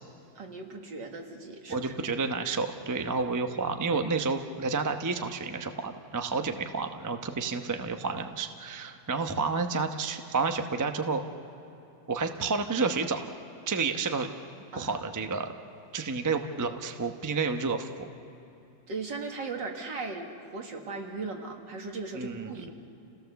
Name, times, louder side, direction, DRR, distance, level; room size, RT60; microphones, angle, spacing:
voice 1, 0.4-1.9 14.7-15.1 18.9-22.7, right 3 dB, 65° right, 2 dB, 2.5 m, -38 dB
voice 2, 1.7-11.2 12.1-13.2 13.7-14.3 14.8-15.5 15.9-18.1 22.1-22.5, right 4 dB, 30° right, 6 dB, 0.3 m, -30 dB
29.0 x 17.0 x 6.9 m, 3.0 s
omnidirectional pair, 2.1 m